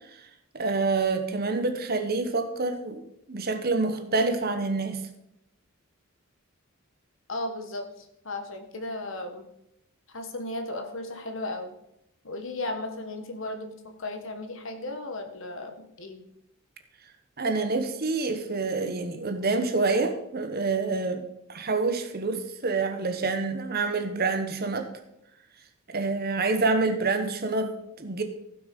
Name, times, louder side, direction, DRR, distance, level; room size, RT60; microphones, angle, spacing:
voice 1, 0.5-5.0 17.4-21.2 21.5-24.9 25.9-28.2, right 3 dB, 45° right, 7 dB, 1.2 m, -27 dB
voice 2, 7.3-9.5 10.1-11.7 12.2-16.2, left 2 dB, 65° left, 6 dB, 1.4 m, -35 dB
15.5 x 6.1 x 5.3 m, 0.83 s
head